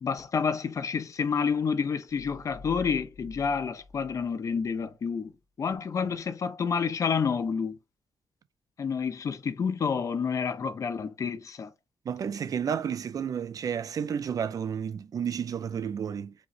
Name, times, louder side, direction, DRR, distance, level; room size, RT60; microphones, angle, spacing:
voice 1, 0.0-5.3 5.6-7.7 8.8-11.7, left 6 dB, 40° left, 0.7 m, -29 dB
sound 1, 2.4-4.8, left 2 dB, 70° right, 1.2 m, -48 dB
voice 2, 12.1-16.3, right 7 dB, 50° right, 0.5 m, -31 dB
5.0 x 3.2 x 2.5 m
wide cardioid pair, 145°, 8 cm